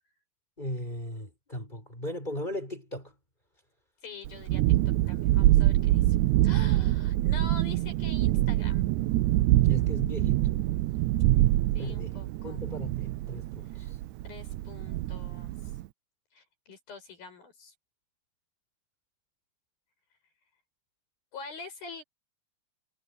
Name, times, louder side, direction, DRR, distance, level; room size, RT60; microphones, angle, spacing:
voice 1, 0.6-3.1 9.6-10.5 11.8-12.2 12.4-14.0, left 1 dB, 10° left, 6.9 m, -37 dB
voice 2, 4.0-4.6 5.1-6.2 6.4-8.9 11.7-12.6 13.7-13.9 14.2-15.5 16.3-17.7 21.3-22.0, left 4 dB, 85° left, 9.2 m, -45 dB
Thunderstorm, 4.2-15.8, right 16 dB, 85° right, 1.7 m, -25 dB
omnidirectional pair, 4.1 m